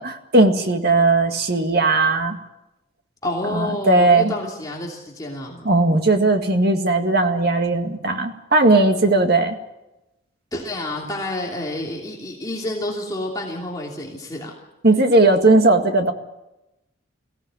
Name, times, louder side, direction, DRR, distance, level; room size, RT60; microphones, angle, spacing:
voice 1, 0.0-2.4 3.4-4.3 5.6-9.6 14.8-16.1, right 2 dB, 50° right, 5 dB, 2.0 m, -17 dB
voice 2, 3.2-5.7 10.5-14.5, left 1 dB, 20° left, -2 dB, 2.9 m, -29 dB
22.5 x 16.0 x 9.0 m, 0.96 s
head